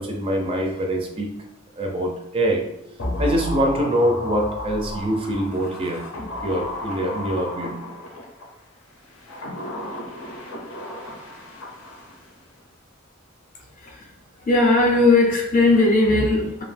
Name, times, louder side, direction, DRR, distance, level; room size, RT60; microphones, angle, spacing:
voice 1, 0.0-1.3 1.8-2.7 3.2-6.1 6.4-7.8, right 1 dB, 25° right, 1 dB, 0.4 m, -24 dB
sound 1, 3.0-8.5 9.1-12.3 12.6-12.7, left 1 dB, 80° left, 0.6 m, -33 dB
voice 2, 13.8-14.1 14.4-16.6, left 2 dB, 40° left, 0 dB, 0.5 m, -18 dB
2.5 x 2.0 x 3.2 m, 0.81 s
head